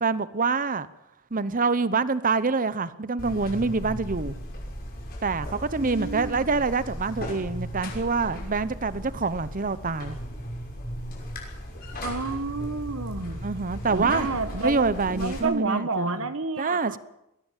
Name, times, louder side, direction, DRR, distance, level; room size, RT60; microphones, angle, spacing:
voice 1, 0.0-0.9 1.3-4.3 5.2-10.2 13.4-14.3 14.6-16.2 16.6-17.0, right 4 dB, 40° right, 15 dB, 0.9 m, -26 dB
Buzz, 3.2-15.4, equal, 45° left, 6.0 m, -36 dB
voice 2, 5.8-6.5 12.0-13.4 13.9-17.0, right 3 dB, 65° right, 10 dB, 1.3 m, -30 dB
22.0 x 17.0 x 7.5 m, 0.87 s
head